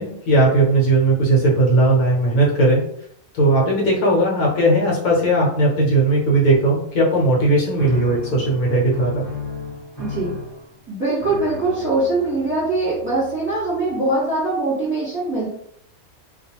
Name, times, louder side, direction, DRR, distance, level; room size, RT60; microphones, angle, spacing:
voice 1, 0.0-2.8 3.3-9.2, right 2 dB, 70° left, -3 dB, 1.2 m, -17 dB
sound 1, 7.8-14.2, left 3 dB, 25° left, 0.8 m, -34 dB
voice 2, 10.0-10.3 10.9-15.5, right 2 dB, 10° right, -7 dB, 1.1 m, -22 dB
2.4 x 2.3 x 2.8 m, 0.67 s
omnidirectional pair, 1.5 m